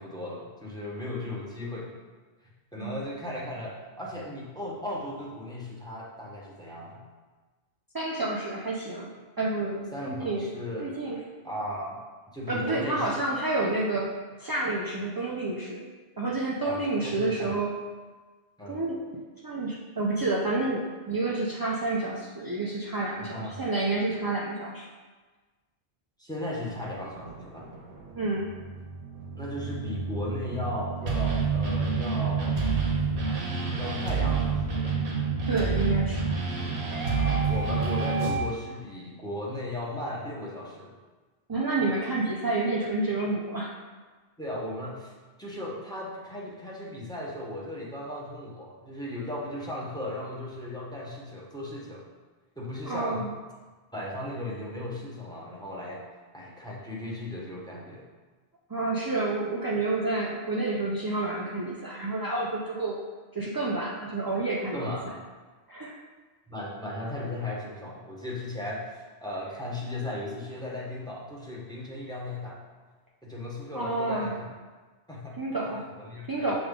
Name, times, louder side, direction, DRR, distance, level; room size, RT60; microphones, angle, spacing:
voice 1, 0.0-1.9 2.4-7.0 9.9-10.9 11.4-12.0 12.3-13.1 13.6-13.7 16.6-17.6 18.6-18.8 23.2-23.6 26.2-27.7 29.3-32.6 33.8-34.9 37.1-40.9 44.4-45.1 45.4-52.1 52.6-53.3 53.9-56.0 56.3-58.0 64.7-65.2 66.5-72.6 73.2-74.5 75.1-75.4 76.0-76.5, left 1 dB, 5° left, -4 dB, 1.0 m, -36 dB
voice 2, 7.9-9.1 9.4-10.5 10.8-11.2 12.5-14.1 14.4-15.8 16.2-17.8 18.7-19.0 19.4-24.9 28.2-28.5 34.2-34.3 35.5-36.4 41.5-43.7 52.8-53.3 58.7-63.0 63.3-64.8 65.7-66.0 73.7-74.3 75.4-75.8 76.3-76.5, right 2 dB, 35° right, -4 dB, 0.3 m, -29 dB
sound 1, 26.7-38.4, right 5 dB, 60° right, 1.1 m, -28 dB
7.0 x 3.7 x 3.6 m, 1.3 s
omnidirectional pair, 1.1 m